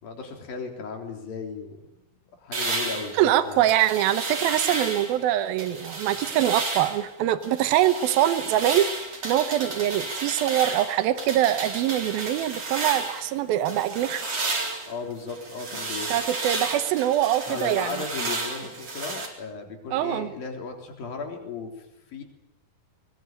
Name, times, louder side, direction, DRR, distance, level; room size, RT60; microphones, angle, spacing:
voice 1, 0.0-1.8 2.3-3.6 14.9-16.1 17.5-22.2, left 5 dB, 75° left, 3 dB, 5.4 m, -36 dB
sound 1, 2.5-5.2 5.6-7.0 7.4-13.3 13.7-19.3, right 3 dB, 45° right, 5.1 m, -32 dB
voice 2, 3.1-14.3 16.1-18.0 19.9-20.3, right 12 dB, 85° right, 12 dB, 2.9 m, -24 dB
22.0 x 20.5 x 9.1 m, 0.89 s
omnidirectional pair, 4.1 m